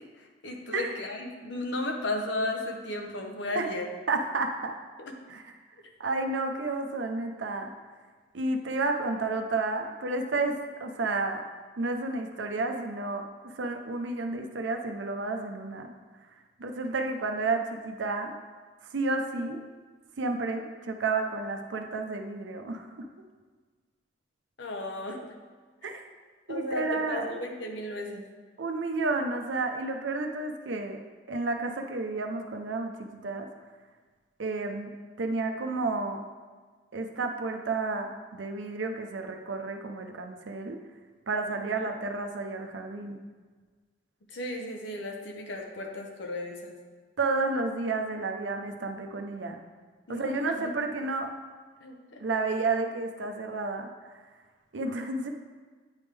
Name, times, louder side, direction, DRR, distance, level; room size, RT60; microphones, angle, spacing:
voice 1, 0.0-3.9 5.0-5.1 24.6-25.3 26.5-28.2 41.5-41.6 44.3-46.8 50.1-50.7 51.8-52.2, left 2 dB, 75° left, 2 dB, 0.8 m, -35 dB
voice 2, 4.1-4.7 5.3-5.4 6.0-7.7 8.3-11.4 11.8-15.9 16.6-18.3 18.9-19.6 20.2-23.1 25.8-26.0 26.5-27.4 28.6-31.0 31.3-33.5 34.4-34.9 35.2-36.2 36.9-40.8 41.3-43.2 47.2-49.6 50.1-51.3 52.2-53.9 54.7-55.3, right 3 dB, 75° right, 4 dB, 0.6 m, -31 dB
9.1 x 3.5 x 3.3 m, 1.5 s
head